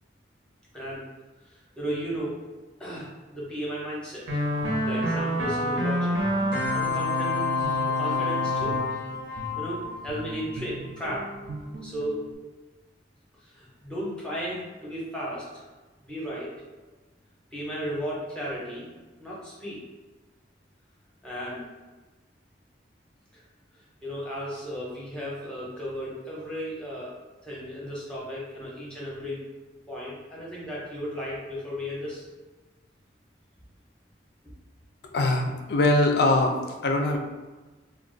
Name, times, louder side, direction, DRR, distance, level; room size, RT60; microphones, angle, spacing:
voice 1, 0.7-1.0 1.5-2.4 2.8-4.3 4.8-6.2 6.7-7.6 7.9-8.8 9.6-11.3 11.8-12.2 13.4-15.6 16.0-16.5 17.5-18.9 19.2-19.8 21.2-21.6 24.0-27.1 27.4-29.4 29.9-32.3, equal, 5° left, -6 dB, 0.6 m, -34 dB
sound 1, 4.3-10.4, left 2 dB, 75° right, 0.7 m, -27 dB
Guitar, 4.6-12.4, equal, 55° right, 0.4 m, -41 dB
voice 2, 35.1-37.2, left 2 dB, 55° left, 3 dB, 0.4 m, -22 dB
2.4 x 2.2 x 3.7 m, 1.2 s
head